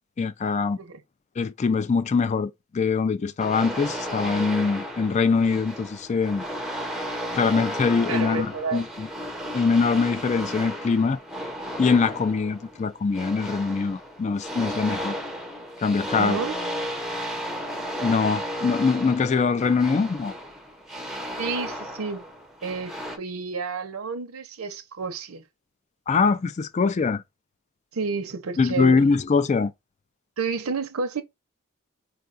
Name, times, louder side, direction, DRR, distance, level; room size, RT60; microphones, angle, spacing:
voice 1, 0.2-0.8 1.4-6.4 7.3-9.1 9.5-11.2 11.8-15.2 15.8-16.4 18.0-20.3 26.1-27.2 28.6-29.7, left 4 dB, 35° left, 0.3 m, -23 dB
sound 1, 3.4-23.2, equal, ahead, 0.7 m, -34 dB
voice 2, 8.1-8.8 16.1-16.6 21.4-22.2 22.6-25.4 27.9-29.0 30.4-31.2, right 4 dB, 85° right, 0.7 m, -30 dB
4.5 x 2.3 x 2.5 m
head